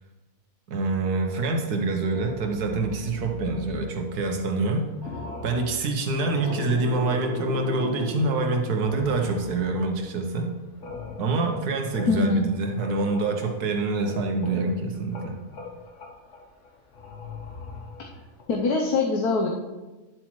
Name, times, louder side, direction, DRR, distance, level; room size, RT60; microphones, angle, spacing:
voice 1, 0.7-4.9 5.4-10.5 11.2-15.4, right 3 dB, 85° right, 4 dB, 1.6 m, -26 dB
sound 1, 1.2-1.8 2.1-4.6 4.9-10.0 10.3-13.7 14.0-18.4, left 3 dB, 50° left, 1.6 m, -38 dB
voice 2, 12.1-12.5 18.5-19.5, left 4 dB, 80° left, 0 dB, 1.4 m, -23 dB
11.0 x 7.7 x 3.1 m, 1.2 s
omnidirectional pair, 1.6 m